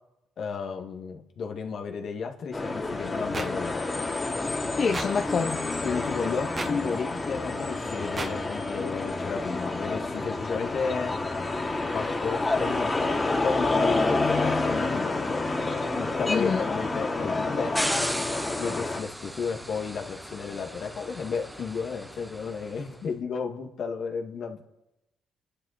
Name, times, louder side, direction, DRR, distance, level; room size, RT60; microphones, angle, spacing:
voice 1, 0.4-3.8 5.8-11.1 11.9-15.4 15.9-17.8 18.6-24.6, left 5 dB, 60° left, 3 dB, 2.1 m, -33 dB
sound 1, 2.5-19.0, left 2 dB, 25° left, 3.0 m, -29 dB
sound 2, 3.3-3.5 4.9-5.1 6.6-6.7 8.2-8.3, right 3 dB, 35° right, 1.7 m, -31 dB
voice 2, 4.8-5.6 16.3-16.6, left 5 dB, 45° left, 4 dB, 1.0 m, -26 dB
sound 3, 17.7-22.9, equal, 5° right, 0.9 m, -36 dB
27.5 x 11.5 x 4.3 m, 0.92 s
cardioid pair, 90°, 0 cm